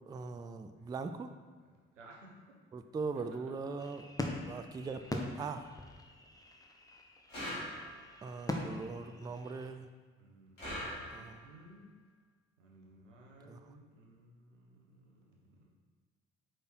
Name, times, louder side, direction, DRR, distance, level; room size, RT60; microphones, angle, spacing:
voice 1, 0.1-1.3 2.7-4.0 4.5-5.6 8.2-9.9 11.1-11.4 13.5-13.6, right 4 dB, 10° right, 8 dB, 0.3 m, -40 dB
voice 2, 2.0-2.6 3.1-3.9 10.2-11.9 12.6-15.7, right 1 dB, 85° right, -1 dB, 0.8 m, -59 dB
sound 1, 3.8-9.7, left 2 dB, 10° left, 0.8 m, -42 dB
sound 2, 7.3-8.2 10.6-11.5, equal, 85° left, 1.8 m, -42 dB
4.8 x 4.5 x 4.4 m, 1.5 s
figure-of-eight pair, 45°, 36 cm